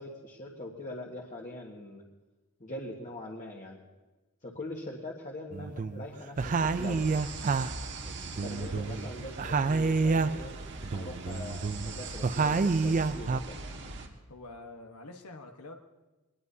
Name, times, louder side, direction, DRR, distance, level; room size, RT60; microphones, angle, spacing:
voice 1, 0.0-2.0 2.6-3.8 4.4-7.0 8.4-10.6 10.9-13.6, left 1 dB, 35° left, -2 dB, 1.6 m, -42 dB
sound 1, 5.5-6.1 6.4-9.1 9.4-10.5 10.8-13.4, right 4 dB, 35° right, 0.4 m, -29 dB
sound 2, 6.4-14.1, right 2 dB, 55° right, 1.6 m, -41 dB
voice 2, 8.5-9.1 14.3-15.8, left 2 dB, 90° left, 3 dB, 1.2 m, -47 dB
22.5 x 20.0 x 2.8 m, 1.1 s
head